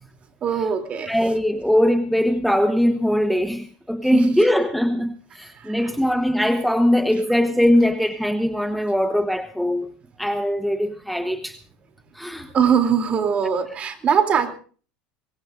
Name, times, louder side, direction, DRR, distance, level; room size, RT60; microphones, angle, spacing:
voice 1, 0.4-1.1 4.1-4.3 12.5-14.6, right 7 dB, 35° right, 6 dB, 3.1 m, -21 dB
voice 2, 1.1-9.9 10.2-11.6 12.1-12.5, equal, ahead, 8 dB, 1.1 m, -21 dB
23.5 x 20.0 x 2.6 m, 0.41 s
supercardioid pair, 105°, 4 cm